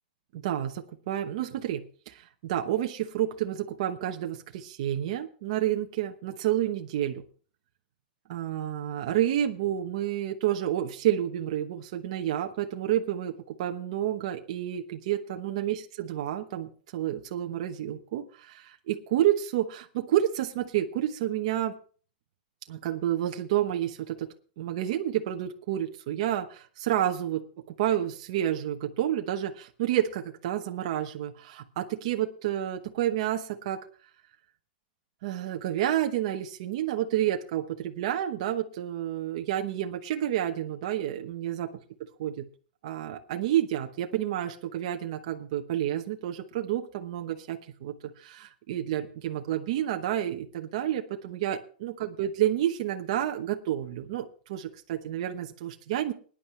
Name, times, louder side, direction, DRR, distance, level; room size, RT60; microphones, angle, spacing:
voice 1, 0.3-7.2 8.3-21.7 22.7-24.3 24.6-27.4 27.8-33.8 35.2-41.7 42.2-42.4 42.8-56.1, right 12 dB, 35° right, 4 dB, 1.0 m, -30 dB
20.5 x 10.0 x 3.3 m, 0.42 s
supercardioid pair, 180°, 5 cm